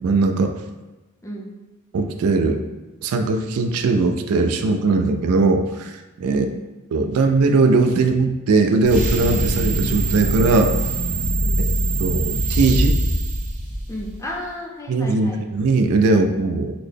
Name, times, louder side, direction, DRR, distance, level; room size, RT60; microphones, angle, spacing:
voice 1, 0.0-0.5 1.9-2.6 3.0-5.9 6.2-6.5 6.9-10.7 12.0-13.0 14.9-16.7, right 3 dB, 80° right, 6 dB, 0.3 m, -19 dB
voice 2, 6.2-6.6 11.4-11.6 13.9-15.4, equal, 15° left, -2 dB, 0.4 m, -33 dB
sound 1, 8.8-14.3, right 1 dB, 35° right, 0.9 m, -22 dB
4.0 x 2.1 x 3.3 m, 1.1 s
head